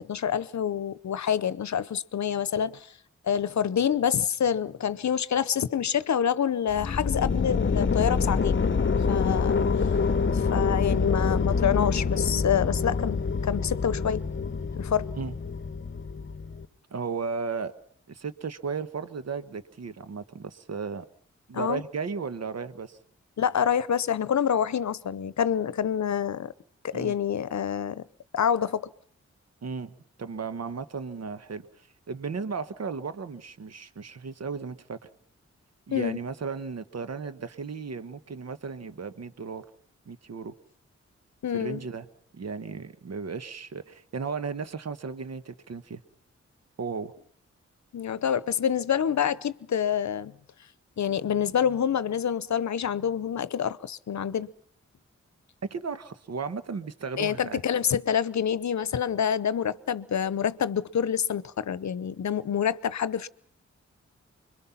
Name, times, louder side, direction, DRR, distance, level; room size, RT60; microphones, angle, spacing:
voice 1, 0.0-2.9 3.2-8.7 9.1-9.6 10.3-14.2 14.8-15.1 21.5-21.8 23.4-26.5 26.8-28.0 28.3-28.9 35.9-36.2 41.4-41.8 47.9-50.3 51.0-54.5 57.2-63.3, left 8 dB, 70° left, 0.8 m, -27 dB
sound 1, 6.7-16.6, left 5 dB, 40° left, 0.9 m, -26 dB
voice 2, 16.9-17.8 18.1-21.1 21.5-23.0 26.9-27.1 29.6-31.7 32.1-35.1 35.9-39.6 40.1-40.5 41.5-42.1 42.3-46.0 46.8-47.1 55.6-57.6, right 5 dB, 60° right, 1.2 m, -35 dB
25.5 x 22.0 x 5.8 m
cardioid pair, 50°, 29 cm